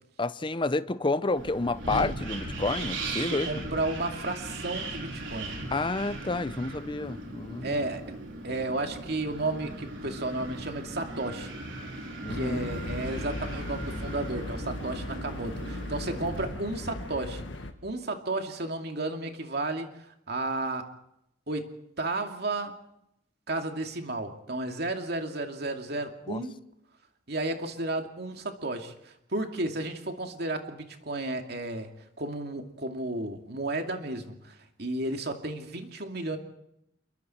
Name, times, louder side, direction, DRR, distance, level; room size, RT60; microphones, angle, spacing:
voice 1, 0.2-3.7 5.7-7.7 12.2-12.7 26.3-26.4, left 2 dB, 25° left, 0.7 m, -30 dB
Wind, 1.4-16.5, right 2 dB, 85° right, 5.0 m, -38 dB
voice 2, 3.3-5.6 7.6-8.2 8.4-11.6 12.3-17.5 17.8-20.9 21.5-22.7 23.5-26.6 27.3-31.9 32.2-36.4, right 2 dB, 60° right, 2.6 m, -33 dB
sound 1, 12.3-17.7, left 1 dB, 75° left, 1.9 m, -37 dB
28.0 x 23.0 x 4.5 m
head